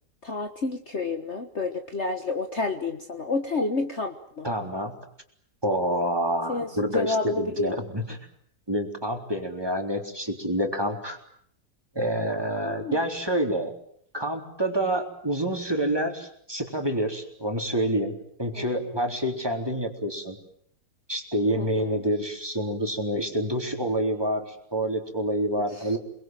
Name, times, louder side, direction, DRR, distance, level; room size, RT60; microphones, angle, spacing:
voice 1, 0.2-4.5 6.5-7.8 12.6-13.0 18.5-19.0 21.6-22.0 25.6-26.0, left 3 dB, 40° left, 6 dB, 1.7 m, -30 dB
voice 2, 4.4-4.9 5.6-8.2 8.7-11.2 12.0-13.7 14.1-20.4 21.1-26.0, right 1 dB, 15° right, 3 dB, 3.7 m, -27 dB
29.5 x 21.5 x 9.2 m, 0.66 s
omnidirectional pair, 1.9 m